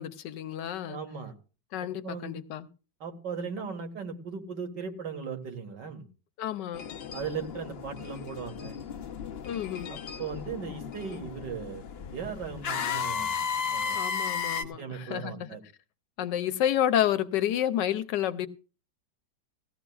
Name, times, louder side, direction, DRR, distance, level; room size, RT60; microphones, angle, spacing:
voice 1, 0.0-1.0 1.7-2.7 6.4-6.8 9.5-9.9 13.9-15.5 16.2-18.5, left 11 dB, 90° left, 1.4 m, -30 dB
voice 2, 0.9-1.3 2.0-2.4 3.0-6.1 7.1-8.8 9.9-13.3 13.7-14.0 14.6-15.6, right 6 dB, 85° right, 2.3 m, -38 dB
sound 1, 6.7-14.6, left 6 dB, 60° left, 0.6 m, -35 dB
17.5 x 14.5 x 2.3 m
omnidirectional pair, 1.8 m